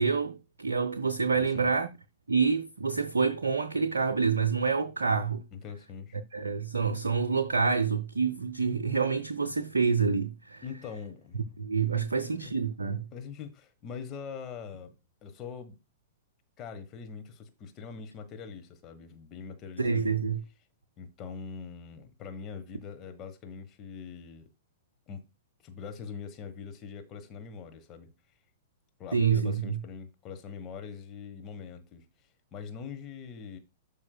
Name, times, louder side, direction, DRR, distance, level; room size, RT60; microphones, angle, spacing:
voice 1, 0.0-1.9 2.3-5.4 6.3-10.6 11.6-13.1 19.8-20.4 29.1-29.8, right 5 dB, 70° right, 0.5 m, -27 dB
voice 2, 1.3-1.7 5.5-6.2 10.6-11.6 11.9-12.5 13.1-15.0 15.2-15.8 16.6-20.2 21.0-24.5 25.1-25.2 25.6-28.1 29.0-32.0 32.5-33.6, left 6 dB, 25° left, 1.2 m, -43 dB
12.0 x 5.1 x 2.2 m
figure-of-eight pair, 105°, 0 cm